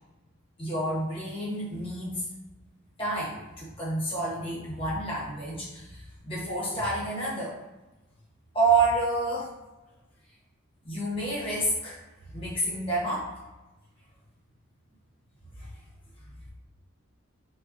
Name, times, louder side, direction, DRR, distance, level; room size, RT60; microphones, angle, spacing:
voice 1, 0.6-2.2 3.0-7.5 8.5-9.5 10.8-12.0 12.3-13.3 15.6-15.7, right 2 dB, 25° left, -7 dB, 1.4 m, -29 dB
4.0 x 3.9 x 2.8 m, 1.1 s
head